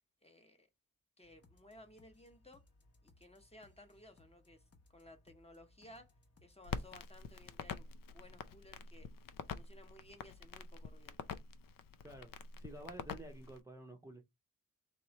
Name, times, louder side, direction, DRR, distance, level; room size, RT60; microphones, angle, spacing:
voice 1, 0.2-0.7 1.2-2.7 3.0-4.6 4.9-6.1 6.4-9.1 9.5-11.2, left 1 dB, 20° left, 0.9 m, -59 dB
sound 1, 1.2-7.3, left 2 dB, 45° left, 1.0 m, -67 dB
Crackle, 6.6-13.6, left 6 dB, 80° left, 0.5 m, -46 dB
voice 2, 12.6-14.2, right 1 dB, 10° right, 0.6 m, -51 dB
3.4 x 3.0 x 4.0 m
wide cardioid pair, 140°, 33 cm